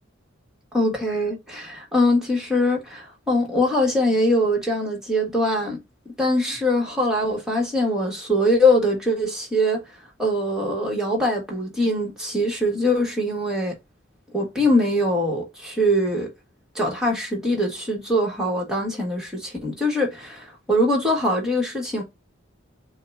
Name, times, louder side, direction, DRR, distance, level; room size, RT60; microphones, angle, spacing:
voice 1, 0.7-5.8 6.2-9.8 10.2-13.7 14.3-16.3 16.8-22.0, left 1 dB, 5° right, 1.8 m, -22 dB
7.0 x 2.4 x 2.6 m
head